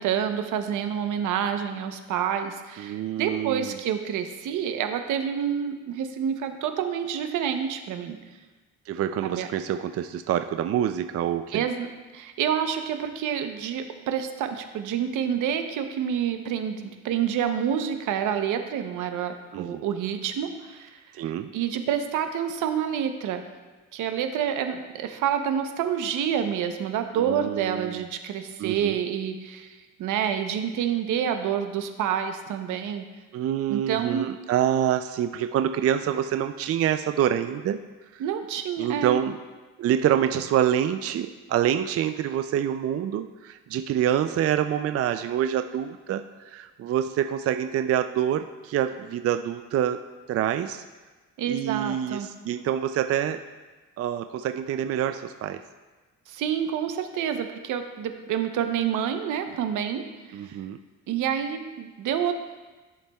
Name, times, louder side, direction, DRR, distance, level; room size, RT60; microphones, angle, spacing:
voice 1, 0.0-8.2 9.2-9.5 11.5-11.9 12.1-23.4 23.9-33.1 33.7-34.3 38.2-39.2 51.4-52.3 56.3-60.4 61.1-62.3, right 8 dB, 85° right, 7 dB, 0.8 m, -28 dB
voice 2, 2.8-3.8 8.9-11.7 19.5-19.8 21.1-21.5 27.1-28.0 28.6-29.0 33.3-37.8 38.1-38.2 38.8-39.4 39.8-50.0 50.3-50.8 51.5-53.4 54.0-55.6 60.3-60.8, right 10 dB, 50° right, 9 dB, 0.4 m, -26 dB
14.0 x 7.1 x 2.3 m, 1.3 s
cardioid pair, 90°, 30 cm